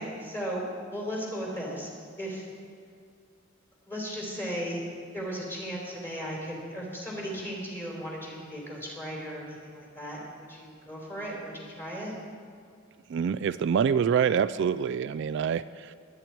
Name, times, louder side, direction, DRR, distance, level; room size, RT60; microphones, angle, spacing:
voice 1, 0.0-1.9 2.2-2.5 3.9-4.9 5.1-12.2, equal, 10° left, -3 dB, 3.6 m, -36 dB
voice 2, 13.1-15.9, right 7 dB, 60° right, 14 dB, 0.3 m, -26 dB
20.5 x 9.6 x 4.6 m, 2.3 s
head